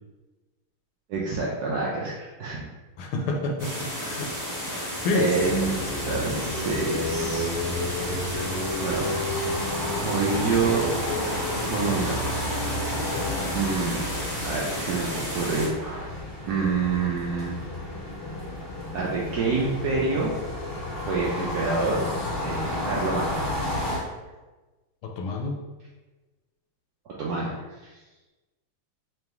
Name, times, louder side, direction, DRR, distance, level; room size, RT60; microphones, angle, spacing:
voice 1, 1.1-2.6 5.1-5.8 6.1-7.5 8.3-8.4 8.8-9.2 10.0-10.9 11.7-12.3 13.5-14.1 14.4-16.1 16.5-17.5 18.9-20.3 21.1-22.0 22.4-23.4 27.1-27.7, right 4 dB, 85° right, -4 dB, 0.8 m, -27 dB
voice 2, 3.0-4.3 4.6-5.5 25.0-25.6, left 3 dB, 85° left, 2 dB, 1.5 m, -29 dB
sound 1, 3.6-15.7, equal, 15° right, 0.6 m, -33 dB
sound 2, 5.4-24.0, left 1 dB, 30° left, 1.5 m, -31 dB
3.4 x 3.0 x 3.5 m, 1.2 s
omnidirectional pair, 2.3 m